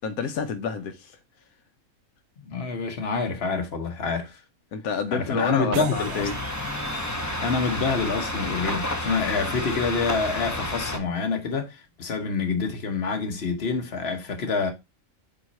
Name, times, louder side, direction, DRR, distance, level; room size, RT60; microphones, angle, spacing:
voice 1, 0.0-1.2 4.7-6.3, left 6 dB, 80° left, 1.2 m, -28 dB
voice 2, 2.4-4.4 5.1-6.3 7.4-14.7, left 4 dB, 50° left, 1.4 m, -27 dB
sound 1, 5.7-10.9, right 11 dB, 80° right, 1.0 m, -41 dB
sound 2, 5.9-11.0, left 1 dB, 15° left, 0.7 m, -30 dB
7.7 x 3.1 x 4.1 m
omnidirectional pair, 1.5 m